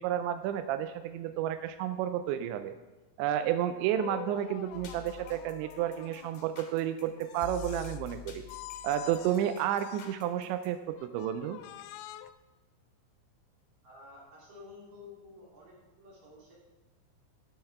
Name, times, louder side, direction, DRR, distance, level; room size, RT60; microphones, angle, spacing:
voice 1, 0.0-2.7 3.2-8.4 8.8-11.6, right 11 dB, 85° right, 10 dB, 2.6 m, -31 dB
sound 1, 3.9-6.5 7.2-8.2 8.5-10.3 10.9-12.3, left 13 dB, 85° left, 3.2 m, -46 dB
sound 2, 4.7-10.7, left 7 dB, 60° left, 2.6 m, -47 dB
voice 2, 13.8-16.6, left 3 dB, 45° right, -5 dB, 4.6 m, -51 dB
12.0 x 10.5 x 3.5 m, 1.2 s
omnidirectional pair, 5.8 m